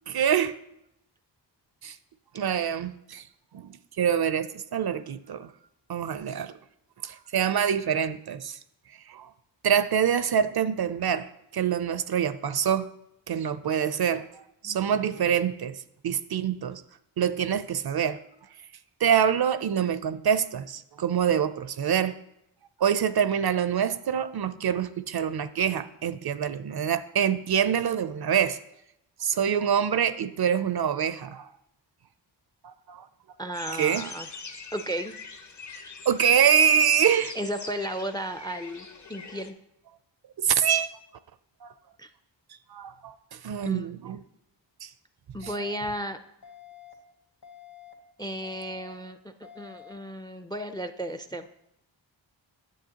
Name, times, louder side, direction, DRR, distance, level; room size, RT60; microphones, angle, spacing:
voice 1, 0.1-0.5 1.8-2.0 2.3-3.2 3.5-5.5 5.9-6.5 7.0-8.6 9.1-9.3 9.6-12.9 13.3-15.8 16.0-16.8 17.2-18.2 19.0-22.1 22.8-28.6 29.2-31.5 32.6-33.1 33.7-34.1 36.1-37.3 40.4-40.9 41.6-41.7 42.7-44.2 44.8-44.9 45.4-45.5, right 8 dB, 55° right, 14 dB, 0.5 m, -25 dB
voice 2, 33.4-34.3 34.7-35.1 37.4-39.6 42.0-42.1 43.6-43.9 45.3-46.2 48.2-51.5, right 1 dB, 10° left, 10 dB, 0.3 m, -34 dB
sound 1, 33.5-39.5, left 4 dB, 40° left, 0.7 m, -43 dB
sound 2, 45.4-45.9 46.4-46.9 47.4-47.9 48.4-48.9 49.4-49.9, left 11 dB, 60° left, 1.6 m, -48 dB
9.2 x 7.6 x 2.8 m, 0.80 s
wide cardioid pair, 55°, 46 cm